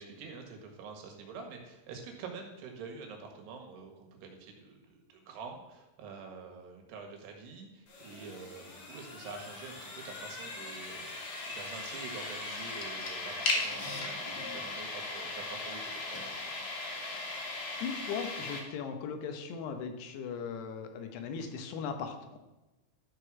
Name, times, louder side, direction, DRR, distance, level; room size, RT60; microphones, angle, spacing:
voice 1, 0.0-16.7, right 5 dB, 85° right, 3 dB, 3.6 m, -47 dB
sound 1, 7.9-18.6, left 3 dB, 50° left, 2.6 m, -38 dB
voice 2, 17.8-22.4, left 6 dB, 85° left, 6 dB, 3.1 m, -38 dB
12.5 x 4.9 x 6.0 m, 1.1 s
omnidirectional pair, 4.6 m